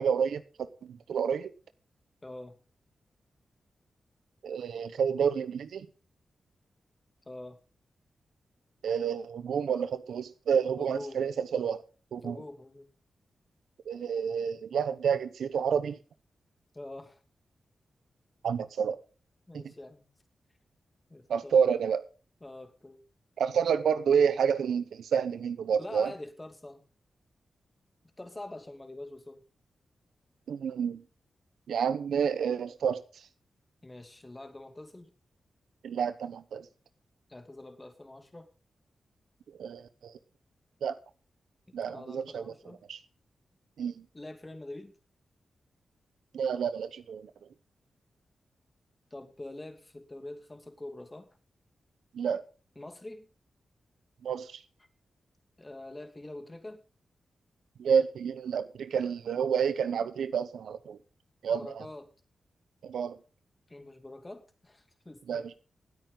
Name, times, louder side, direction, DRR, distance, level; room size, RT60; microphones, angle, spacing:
voice 1, 0.0-1.5 4.4-5.9 8.8-11.8 12.1-12.4 13.9-16.0 18.4-19.0 19.5-19.7 21.3-22.0 23.4-26.1 30.5-31.0 31.7-33.3 35.8-36.7 39.6-40.1 40.8-41.0 41.7-42.5 42.9-43.0 43.8-44.1 46.3-47.3 52.1-52.4 54.2-54.6 57.8-61.0 61.4-61.8 62.8-63.2 65.3-65.5, right 7 dB, 85° right, 0.9 m, -29 dB
voice 2, 2.2-2.6 7.3-7.6 10.8-11.2 12.2-12.9 16.7-17.2 19.5-20.1 21.1-21.7 22.4-23.0 25.8-26.8 28.2-29.4 33.8-35.1 37.3-38.5 41.9-42.8 44.1-44.9 49.1-51.3 52.8-53.3 55.6-56.8 61.5-62.1 63.7-65.5, left 2 dB, 25° left, 2.7 m, -45 dB
19.0 x 8.9 x 3.9 m
cardioid pair, 60°, 0 cm